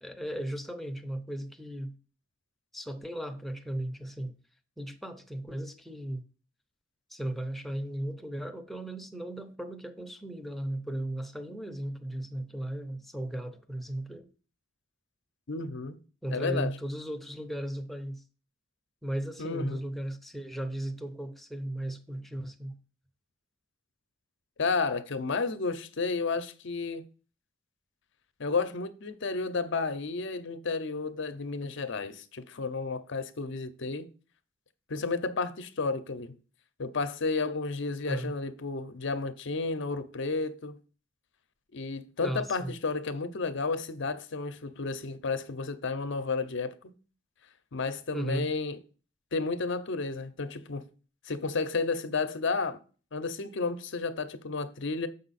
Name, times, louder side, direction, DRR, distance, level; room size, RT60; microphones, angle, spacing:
voice 1, 0.0-2.0 2.7-4.3 4.8-6.2 7.1-14.3 16.2-18.2 19.0-22.8 38.0-38.3 42.2-42.7 48.1-48.5, right 1 dB, ahead, 0.7 m, -36 dB
voice 2, 15.5-16.0 16.3-16.7 19.4-19.8 24.6-27.0 28.4-34.1 34.9-36.4 36.8-40.8 41.7-46.9 47.7-48.8 49.3-50.9 51.3-52.8 53.1-55.1, left 4 dB, 65° left, 0.7 m, -32 dB
7.2 x 5.4 x 4.2 m
head